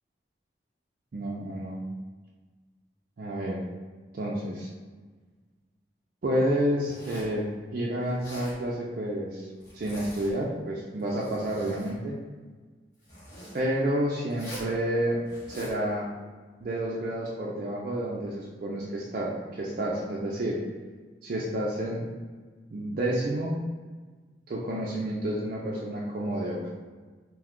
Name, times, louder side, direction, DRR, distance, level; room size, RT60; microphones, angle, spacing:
voice 1, 1.1-1.8 3.2-3.6 4.1-4.7 6.2-9.5 9.7-12.2 13.5-15.2 15.5-16.1 16.6-20.6 21.2-22.1 22.7-23.6 24.5-26.8, right 1 dB, 50° right, -4 dB, 0.4 m, -30 dB
Zipper (clothing), 6.8-7.4 8.1-8.6 9.6-10.3 10.9-12.0 13.0-13.6 14.3-14.7 15.3-15.8, equal, 60° left, 1.3 m, -44 dB
2.6 x 2.3 x 3.6 m, 1.4 s
head